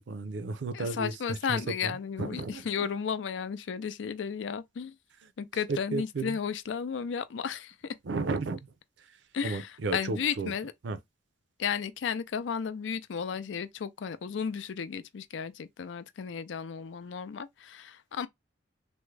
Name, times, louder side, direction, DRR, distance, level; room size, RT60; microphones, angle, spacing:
voice 1, 0.1-2.6 5.7-6.4 8.0-8.7 9.4-10.5 10.8-11.0, right 3 dB, 75° right, 0.5 m, -33 dB
voice 2, 0.7-4.9 5.4-7.9 9.3-10.7 11.6-18.3, left 7 dB, 80° left, 0.4 m, -34 dB
3.5 x 2.1 x 3.2 m
head